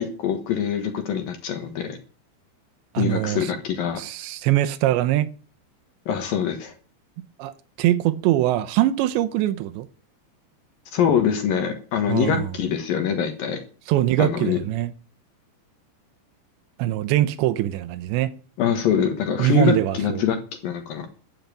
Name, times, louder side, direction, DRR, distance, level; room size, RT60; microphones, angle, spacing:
voice 1, 0.0-2.0 3.0-4.0 6.1-6.7 10.9-13.6 14.2-14.6 18.6-20.4 20.6-21.1, left 8 dB, 65° left, 2.5 m, -24 dB
voice 2, 2.9-3.5 4.0-5.3 7.4-7.5 7.8-9.9 12.1-12.5 13.9-14.9 16.8-18.3 19.4-20.2, right 14 dB, 80° right, 2.9 m, -22 dB
13.5 x 7.3 x 9.0 m
omnidirectional pair, 5.3 m